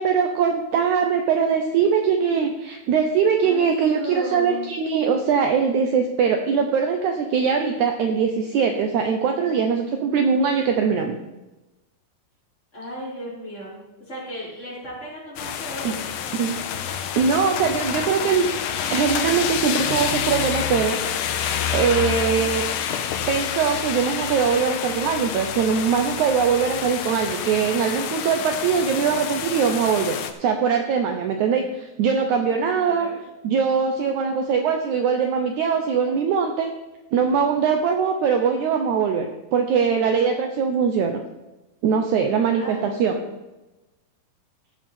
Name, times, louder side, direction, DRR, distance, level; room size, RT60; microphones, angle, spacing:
voice 1, 0.0-11.2 15.8-15.9 16.3-16.6 17.1-18.5 18.9-21.0 21.3-22.6 23.3-33.1 33.4-36.7 37.1-39.3 39.5-41.2 41.8-43.1, right 6 dB, 80° right, 4 dB, 1.7 m, -22 dB
voice 2, 3.4-4.7 12.7-16.3 32.8-33.2 42.5-43.3, equal, 20° left, -8 dB, 4.9 m, -36 dB
sound 1, 15.4-30.3, left 9 dB, 75° left, 2.0 m, -28 dB
16.5 x 7.4 x 4.4 m, 1.0 s
omnidirectional pair, 4.4 m